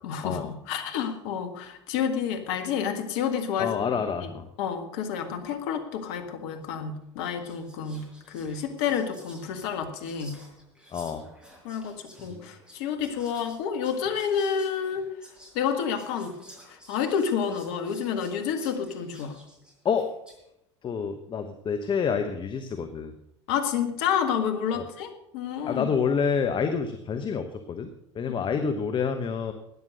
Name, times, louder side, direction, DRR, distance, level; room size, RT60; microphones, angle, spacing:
voice 1, 0.0-4.3 4.6-10.4 11.6-15.1 15.5-16.3 16.7-19.4 23.5-25.9, left 7 dB, 65° left, 6 dB, 1.8 m, -29 dB
voice 2, 3.6-4.5 10.9-11.2 12.3-12.5 19.8-20.1 20.8-23.2 24.8-24.9 25.7-27.9 28.1-29.5, left 6 dB, 30° left, 7 dB, 1.1 m, -28 dB
Whispering, 6.6-6.8 7.2-20.5, equal, 5° right, 4.9 m, -53 dB
13.5 x 9.5 x 6.5 m, 0.82 s
hypercardioid pair, 75°, 15 cm